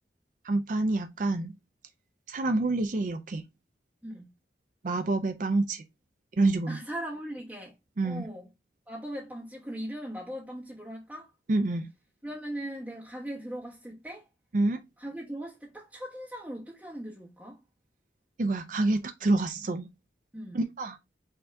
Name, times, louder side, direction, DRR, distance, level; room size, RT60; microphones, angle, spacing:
voice 1, 0.4-1.5 2.3-3.4 4.8-5.8 6.4-6.8 8.0-8.3 11.5-11.9 14.5-14.8 18.4-19.9 20.5-21.0, right 2 dB, 45° right, 0.5 m, -27 dB
voice 2, 4.0-4.3 6.7-7.7 8.0-8.5 8.9-11.3 12.2-14.3 15.0-17.6 20.3-20.6, right 1 dB, 10° right, 1.0 m, -39 dB
5.6 x 2.7 x 3.4 m
head